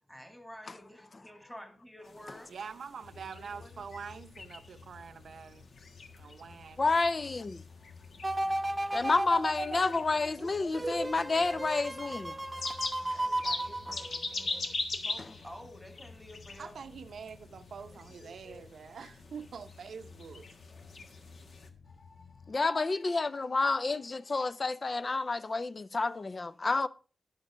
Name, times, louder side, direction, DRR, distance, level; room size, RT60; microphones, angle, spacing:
voice 1, 0.0-2.5 3.1-3.9 13.1-14.8 15.0-16.9 17.9-18.6, equal, 5° left, 2.0 m, -51 dB
sound 1, 2.0-21.7, left 3 dB, 60° left, 1.4 m, -43 dB
voice 2, 2.5-5.7 6.2-6.9 16.6-20.5, right 6 dB, 65° right, 0.7 m, -45 dB
sound 2, 3.0-22.6, left 5 dB, 80° left, 0.9 m, -54 dB
voice 3, 6.8-7.6 8.9-12.6 13.0-13.1 22.5-26.9, left 3 dB, 30° left, 0.4 m, -30 dB
sound 3, 8.2-14.5 14.9-15.0, right 1 dB, 15° right, 0.6 m, -35 dB
11.0 x 6.4 x 4.9 m
wide cardioid pair, 145°, 0 cm